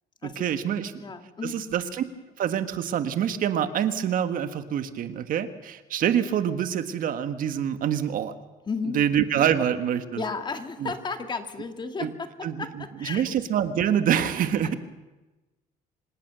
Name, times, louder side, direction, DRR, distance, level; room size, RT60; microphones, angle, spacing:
voice 1, 0.2-1.0 1.4-2.0 2.4-8.3 8.9-10.2 10.8-10.9 12.0-12.1 12.4-12.6 13.0-14.7, right 9 dB, 60° right, 10 dB, 1.6 m, -26 dB
voice 2, 1.0-1.7 8.7-9.0 10.1-13.2 14.6-14.7, left 4 dB, 30° left, 7 dB, 2.0 m, -33 dB
26.0 x 18.5 x 6.9 m, 1.1 s
cardioid pair, 120°, 16 cm